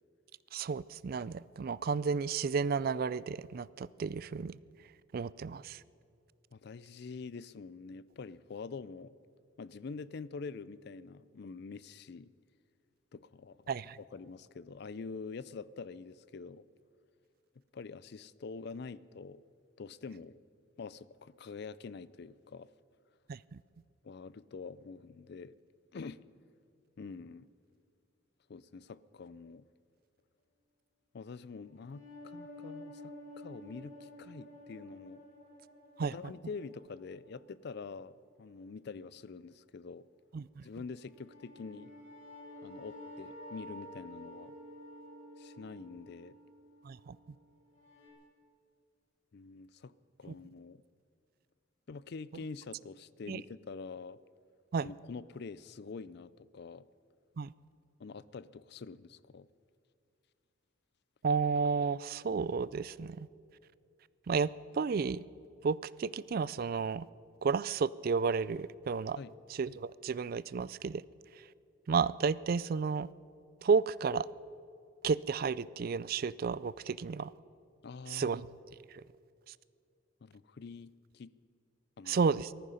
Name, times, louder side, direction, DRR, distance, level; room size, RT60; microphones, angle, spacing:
voice 1, 0.5-4.5 5.1-5.8 13.7-14.0 23.3-23.6 36.0-36.1 40.3-40.6 46.8-47.2 53.3-53.4 54.7-54.9 57.4-57.5 61.2-63.3 64.3-65.2 65.6-67.1 67.4-69.2 69.6-71.0 71.9-73.1 73.6-74.3 75.0-77.3 78.1-78.5 82.1-82.5, right 5 dB, 50° right, 19 dB, 0.3 m, -32 dB
voice 2, 6.5-9.2 9.6-12.3 13.1-16.6 17.7-19.4 19.8-20.4 20.8-22.7 24.0-25.6 25.9-26.2 27.0-27.5 28.5-29.7 31.1-35.2 36.0-40.1 40.6-41.9 42.6-44.5 45.4-46.4 49.3-49.9 50.2-50.8 51.9-54.2 54.8-56.9 58.0-59.5 69.2-69.4 77.8-78.4 80.2-81.3 82.0-82.2, left 4 dB, 55° left, 18 dB, 0.4 m, -46 dB
sound 1, 31.7-37.5 40.8-48.1, left 1 dB, 35° left, 3.7 m, -51 dB
18.5 x 14.0 x 5.7 m, 2.4 s
head